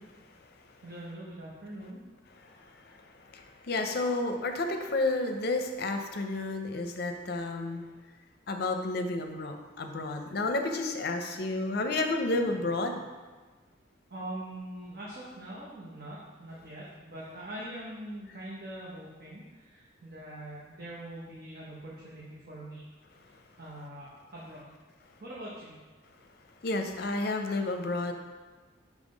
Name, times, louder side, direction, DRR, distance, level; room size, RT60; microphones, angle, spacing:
voice 1, 0.8-2.0 14.1-22.8 23.2-24.8 25.2-25.8, right 1 dB, 55° right, -6 dB, 0.9 m, -43 dB
voice 2, 2.4-3.0 3.3-7.8 8.5-13.0 26.6-28.1, left 2 dB, 55° left, 5 dB, 0.6 m, -31 dB
5.6 x 3.3 x 5.1 m, 1.3 s
head